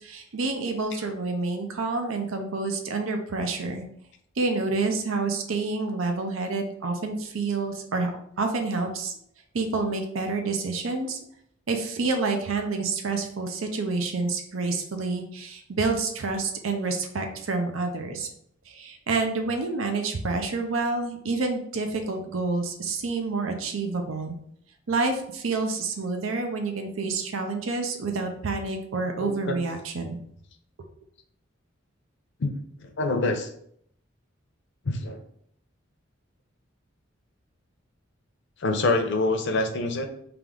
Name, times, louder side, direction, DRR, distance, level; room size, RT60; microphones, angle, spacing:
voice 1, 0.0-3.8 4.4-8.1 8.4-9.1 9.5-11.2 11.7-18.3 18.7-24.4 24.9-30.2, right 3 dB, 85° right, 5 dB, 0.6 m, -28 dB
voice 2, 29.2-29.6 32.4-32.5 33.0-33.5 34.9-35.2 38.6-40.1, left 2 dB, 65° left, 6 dB, 0.6 m, -25 dB
3.4 x 2.9 x 3.6 m, 0.68 s
head